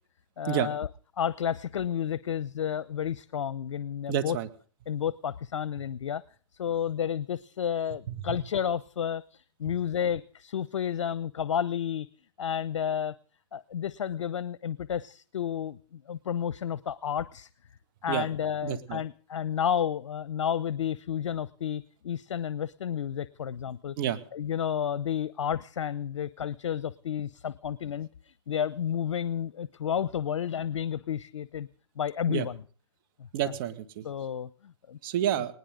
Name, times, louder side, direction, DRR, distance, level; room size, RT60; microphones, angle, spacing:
voice 1, 0.4-0.9 1.2-4.4 4.9-6.2 6.6-12.1 12.4-13.2 13.5-17.5 18.0-24.0 24.3-31.7 32.0-32.6 33.2-33.5 34.0-35.0 35.3-35.4, left 9 dB, 80° left, 17 dB, 0.7 m, -31 dB
voice 2, 4.1-4.5 18.1-18.3 18.6-19.0 24.0-24.2 32.3-32.5 33.3-34.0 35.0-35.5, right 11 dB, 45° right, 9 dB, 2.1 m, -29 dB
19.5 x 19.5 x 3.8 m, 0.43 s
hypercardioid pair, 135°, 16 cm